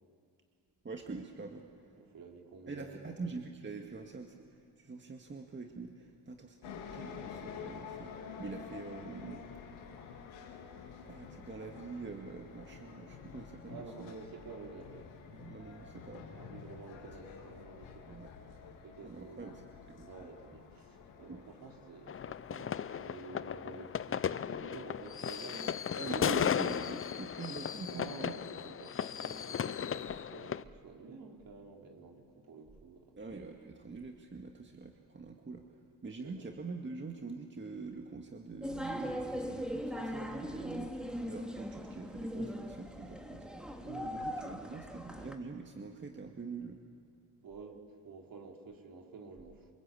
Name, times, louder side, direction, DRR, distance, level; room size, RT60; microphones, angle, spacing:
voice 1, 0.8-1.7 2.7-9.4 11.1-14.1 15.3-16.3 18.1-18.3 19.0-19.5 19.9-20.1 21.3-21.4 26.0-28.4 33.2-46.8, right 4 dB, 25° right, 3 dB, 2.1 m, -45 dB
voice 2, 1.9-3.2 13.7-15.1 16.4-18.2 18.8-19.7 20.1-25.8 27.9-33.5 36.0-36.5 42.3-42.6 43.8-44.5 47.4-49.7, right 4 dB, 50° right, 1 dB, 4.5 m, -50 dB
sound 1, 6.6-25.1, left 6 dB, 85° left, 3.6 m, -50 dB
sound 2, 22.1-30.6, left 8 dB, 30° left, 0.7 m, -36 dB
sound 3, 38.6-45.4, equal, ahead, 2.7 m, -40 dB
28.0 x 23.5 x 8.6 m, 2.2 s
supercardioid pair, 75°, 44 cm